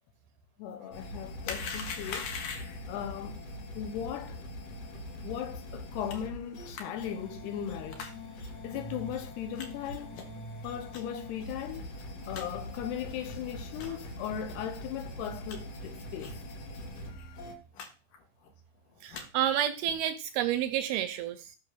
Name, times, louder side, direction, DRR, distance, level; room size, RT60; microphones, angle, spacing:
voice 1, 0.6-2.3 2.9-3.4 3.8-4.4 5.2-8.1 8.6-10.2 10.6-11.9 12.3-16.4, left 9 dB, 75° left, 3.0 m, -38 dB
sound 1, 0.9-17.5, equal, 45° left, 2.7 m, -43 dB
sound 2, 1.4-2.9 6.1-6.2 6.7-6.8 7.9-8.1 8.7-8.8 9.6-9.7 10.1-10.4 10.9-11.0 11.6-11.7 11.9-12.0 12.3-12.5 13.0-13.1 13.7-14.0 14.5-14.6 15.0-15.6 16.2-16.4 16.7-16.8 17.0-17.2 17.7-17.9 18.1-18.5 18.9-19.2 19.8-20.1, left 5 dB, 60° left, 2.8 m, -41 dB
voice 2, 19.0-21.6, right 11 dB, 80° right, 2.3 m, -30 dB
14.5 x 5.2 x 6.7 m
omnidirectional pair, 4.9 m